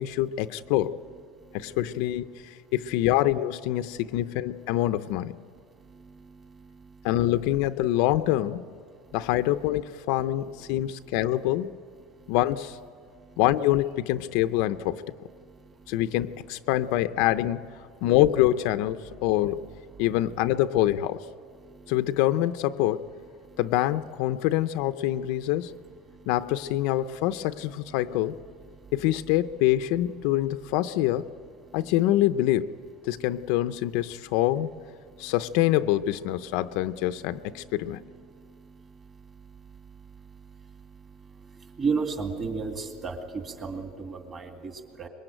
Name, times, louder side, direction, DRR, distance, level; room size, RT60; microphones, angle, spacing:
voice 1, 0.0-1.0 1.5-5.4 7.0-8.6 9.1-11.8 12.3-12.8 13.4-15.0 15.9-17.7 18.0-19.6 20.0-21.2 21.9-23.1 23.6-25.7 26.3-28.4 28.9-31.3 31.7-32.7 33.0-34.7 35.2-38.0, left 14 dB, 55° left, 10 dB, 0.6 m, -25 dB
voice 2, 1.0-2.3 2.8-3.1 3.9-4.2 5.1-5.2 5.5-7.6 9.0-9.9 10.2-11.7 12.0-12.4 13.0-13.4 14.8-14.9 15.3-16.5 16.8-17.2 19.1-20.6 21.5-22.4 23.0-23.1 23.4-23.7 24.5-24.7 25.1-29.4 29.7-31.2 31.6-32.3 33.1-34.8 35.0-35.4 36.3-45.1, right 5 dB, 25° right, 4 dB, 2.3 m, -41 dB
25.5 x 22.5 x 9.1 m, 2.2 s
cardioid pair, 175°, 0 cm